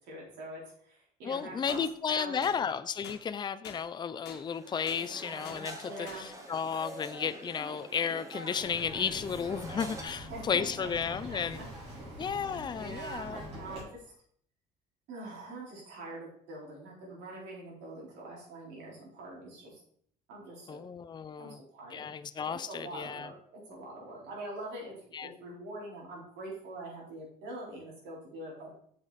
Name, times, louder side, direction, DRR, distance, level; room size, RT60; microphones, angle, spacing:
voice 1, 0.0-1.8 2.1-2.6 5.8-6.3 10.1-11.6 12.0-12.2 12.7-14.1 15.1-19.8 20.3-20.8 21.4-22.1 22.7-28.7, right 2 dB, 90° right, -3 dB, 4.2 m, -44 dB
voice 2, 1.3-11.6 12.2-13.4 20.7-21.6 21.9-23.3 25.1-25.3, left 7 dB, 25° left, 12 dB, 0.5 m, -33 dB
sound 1, 1.7-1.8 2.4-2.6 3.0-3.2 3.6-3.8 4.3-4.4 4.9-5.0 5.4-5.6 6.1-6.2, left 7 dB, 80° left, 1.5 m, -46 dB
sound 2, 4.4-10.0, right 1 dB, 20° right, 1.8 m, -45 dB
Bird vocalization bird call bird song, 8.6-13.8, equal, 40° right, 4.0 m, -44 dB
7.8 x 7.0 x 4.1 m, 0.63 s
cardioid pair, 110°, 17 cm